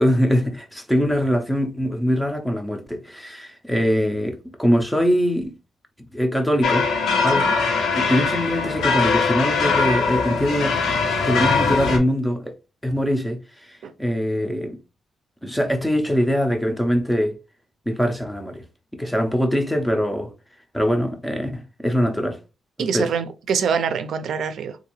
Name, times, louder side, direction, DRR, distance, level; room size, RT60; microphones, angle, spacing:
voice 1, 0.0-5.5 6.1-6.9 7.2-7.5 7.9-12.5 12.8-13.4 13.7-14.8 15.4-17.3 17.9-18.6 18.9-20.3 20.7-22.4 22.8-23.1, equal, 5° left, 0.5 m, -22 dB
sound 1, 6.6-12.0, left 4 dB, 80° left, 1.0 m, -21 dB
voice 2, 22.8-24.8, right 6 dB, 60° right, 0.5 m, -25 dB
3.8 x 2.6 x 3.0 m
wide cardioid pair, 180°, 0 cm